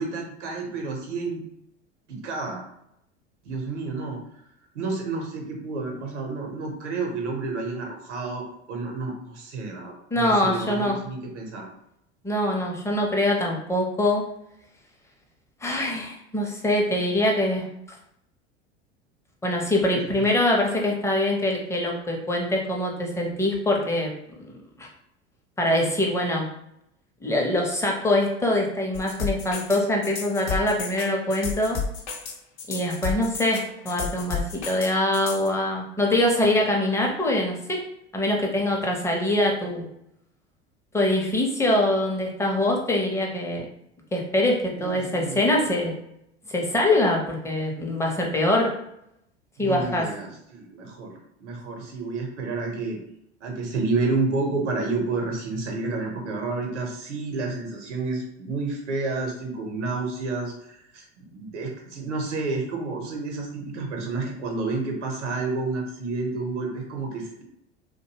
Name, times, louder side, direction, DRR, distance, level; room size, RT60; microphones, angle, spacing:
voice 1, 0.0-1.4 2.1-2.6 3.4-4.2 4.7-11.7 44.8-45.4 49.6-53.0 53.4-67.4, right 3 dB, 80° right, 1 dB, 0.7 m, -30 dB
voice 2, 10.1-11.0 12.2-14.2 15.6-17.7 19.4-24.1 24.4-24.9 25.6-26.5 27.2-31.8 32.7-37.8 38.1-39.8 40.9-43.7 44.1-45.9 46.5-48.7 49.6-50.1, left 1 dB, 10° left, 0 dB, 0.6 m, -24 dB
sound 1, 28.9-35.5, left 5 dB, 70° left, 0.7 m, -31 dB
2.5 x 2.2 x 2.8 m, 0.78 s
hypercardioid pair, 80°, 35 cm